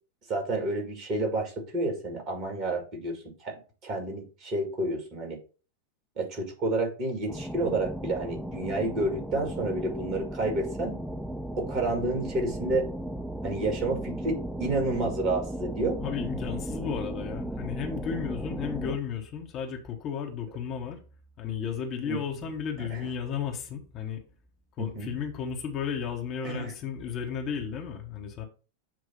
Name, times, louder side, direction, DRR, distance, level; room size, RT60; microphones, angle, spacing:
voice 1, 0.3-3.5 3.8-5.4 6.2-11.0 11.6-12.9 13.4-16.0 22.0-22.2 22.8-23.1 24.8-25.1 26.4-26.7, right 2 dB, 35° right, 2 dB, 2.3 m, -30 dB
sound 1, 7.3-19.0, right 1 dB, ahead, 0.5 m, -36 dB
voice 2, 16.0-21.0 21.4-24.2 24.8-28.4, left 7 dB, 35° left, 2 dB, 1.2 m, -34 dB
7.6 x 2.6 x 5.5 m, 0.35 s
figure-of-eight pair, 90°, 0 cm